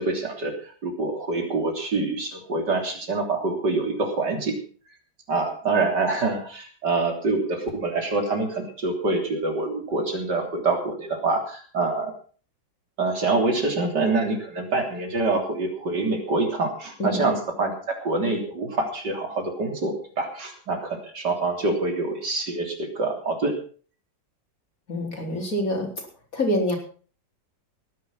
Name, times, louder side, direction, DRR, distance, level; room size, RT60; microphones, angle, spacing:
voice 1, 0.0-4.6 5.3-12.1 13.0-23.6, right 3 dB, 65° right, 4 dB, 3.9 m, -26 dB
voice 2, 17.0-17.3 24.9-25.9 26.3-26.8, left 1 dB, 45° left, 2 dB, 4.5 m, -26 dB
18.5 x 10.5 x 6.0 m, 0.41 s
omnidirectional pair, 2.0 m